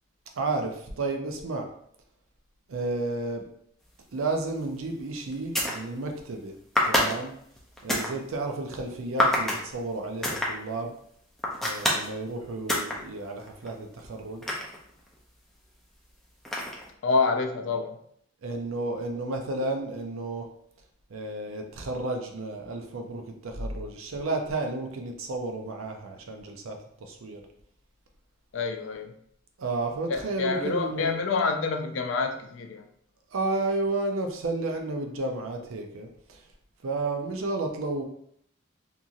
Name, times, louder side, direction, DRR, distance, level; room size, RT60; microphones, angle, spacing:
voice 1, 0.3-1.7 2.7-3.4 4.1-6.6 6.9-7.3 7.8-10.9 11.6-14.4 18.4-20.5 21.1-27.4 29.6-31.1 33.3-36.4 36.8-38.0, right 2 dB, 85° right, 4 dB, 0.5 m, -32 dB
sound 1, 4.6-4.8 5.3-5.8 6.7-8.1 9.2-9.6 10.2-10.5 11.4-12.1 12.7-13.0 13.4-15.2 16.4-16.9, left 1 dB, ahead, 0.4 m, -26 dB
voice 2, 17.0-18.0 28.5-29.1 30.1-32.9, left 4 dB, 65° left, 5 dB, 0.4 m, -27 dB
2.8 x 2.6 x 2.4 m, 0.68 s
head